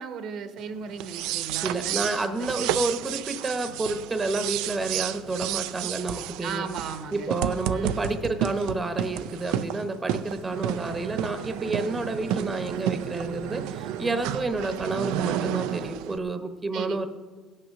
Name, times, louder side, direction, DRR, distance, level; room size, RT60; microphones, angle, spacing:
voice 1, 0.0-2.7 6.4-7.3 7.7-8.1 16.7-17.0, right 6 dB, 65° right, 9 dB, 1.0 m, -36 dB
sound 1, 0.9-16.2, right 11 dB, 85° right, 0.4 m, -31 dB
voice 2, 1.6-6.7 7.1-17.1, right 3 dB, 20° right, 9 dB, 0.9 m, -30 dB
17.0 x 6.6 x 5.9 m, 1.4 s
cardioid pair, 110°, 0 cm